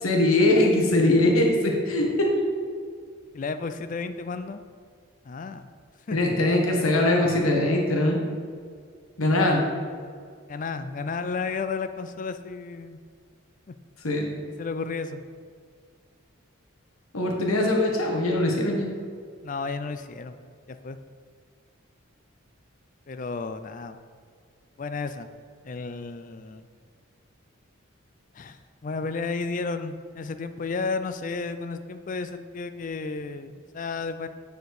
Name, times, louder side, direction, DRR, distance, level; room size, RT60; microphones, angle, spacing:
voice 1, 0.0-2.4 6.1-8.2 9.2-9.6 14.0-14.3 17.1-18.9, left 1 dB, 85° left, 0 dB, 1.3 m, -22 dB
voice 2, 3.3-4.6 5.2-5.7 6.1-6.3 10.5-13.0 13.7-13.8 14.6-15.2 19.4-20.4 20.7-21.0 23.1-24.0 24.8-25.3 25.6-26.7 28.4-34.3, left 4 dB, 40° left, 10 dB, 0.4 m, -32 dB
9.4 x 4.3 x 4.8 m, 2.1 s
head